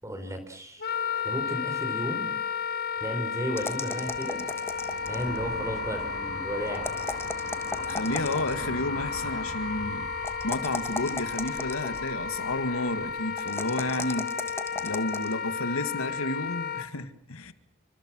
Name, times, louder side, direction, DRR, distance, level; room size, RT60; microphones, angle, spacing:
voice 1, 0.0-2.3 3.0-4.4 5.1-7.0, equal, 15° right, 4.5 m, -34 dB
Wind instrument woodwind instrument, 0.8-16.9, left 6 dB, 50° left, 1.8 m, -33 dB
sound 1, 3.6-5.4 6.7-8.7 10.2-12.1 13.4-15.3, left 2 dB, 10° left, 1.4 m, -36 dB
sound 2, 3.6-14.2, right 3 dB, 60° right, 2.4 m, -42 dB
voice 2, 7.9-10.1 10.4-14.3 14.8-17.5, left 2 dB, 90° left, 1.9 m, -31 dB
28.5 x 25.0 x 6.2 m
head